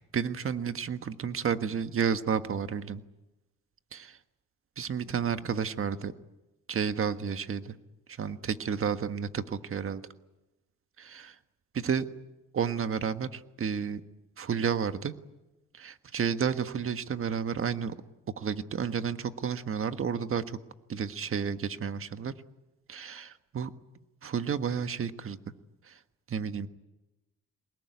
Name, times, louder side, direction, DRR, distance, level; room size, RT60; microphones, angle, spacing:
voice 1, 0.1-3.0 3.9-4.1 4.8-6.1 6.7-7.7 8.2-10.0 11.0-11.3 11.7-12.0 12.5-14.0 14.4-15.1 15.8-17.9 18.4-20.6 20.9-22.3 22.9-23.7 24.2-25.4 25.9-26.0 26.3-26.7, right 7 dB, 45° right, 10 dB, 1.5 m, -31 dB
23.5 x 20.5 x 9.6 m, 0.99 s
cardioid pair, 90°, 30 cm